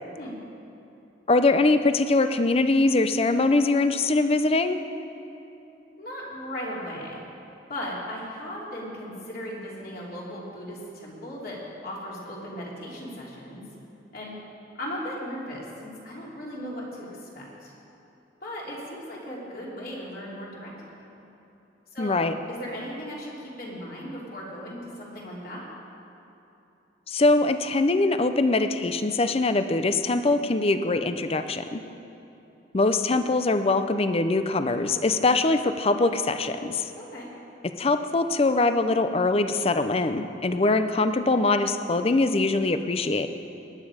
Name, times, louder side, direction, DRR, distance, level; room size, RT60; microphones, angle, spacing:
voice 1, 1.3-4.8 22.0-22.3 27.1-31.8 32.7-36.9 37.8-43.3, left 2 dB, 35° left, 9 dB, 0.5 m, -23 dB
voice 2, 6.0-7.2 7.7-11.6 11.8-13.6 14.1-14.3 14.8-17.7 18.4-20.7 21.9-22.2 22.5-25.6 37.0-37.3, equal, 55° left, -5 dB, 3.2 m, -37 dB
19.5 x 9.5 x 5.0 m, 2.9 s
head